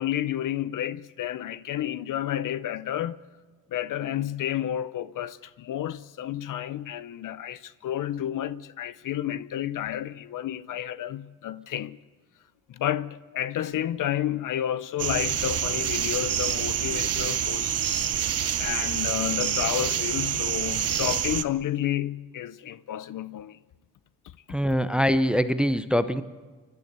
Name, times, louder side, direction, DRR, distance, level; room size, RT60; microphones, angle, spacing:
voice 1, 0.0-3.2 3.7-12.0 12.7-18.1 18.6-23.6, left 11 dB, 55° left, 0.6 m, -31 dB
sound 1, 15.0-21.4, right 9 dB, 40° right, 0.7 m, -27 dB
voice 2, 24.5-26.2, equal, ahead, 0.6 m, -23 dB
28.0 x 12.0 x 8.1 m
cardioid pair, 120°, 38 cm